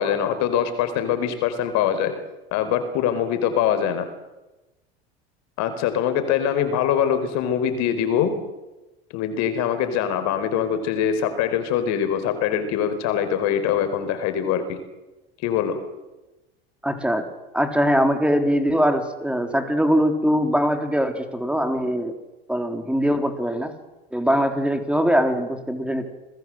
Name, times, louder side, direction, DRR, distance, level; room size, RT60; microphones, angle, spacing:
voice 1, 0.0-2.1 2.5-4.1 5.6-8.3 9.1-14.8 15.4-15.8, left 8 dB, 60° left, 10 dB, 4.6 m, -23 dB
voice 2, 16.8-17.3 17.5-22.1 22.5-23.7 24.1-26.0, equal, 5° right, 6 dB, 3.8 m, -22 dB
28.5 x 21.0 x 7.9 m, 1.0 s
hypercardioid pair, 80°, 30 cm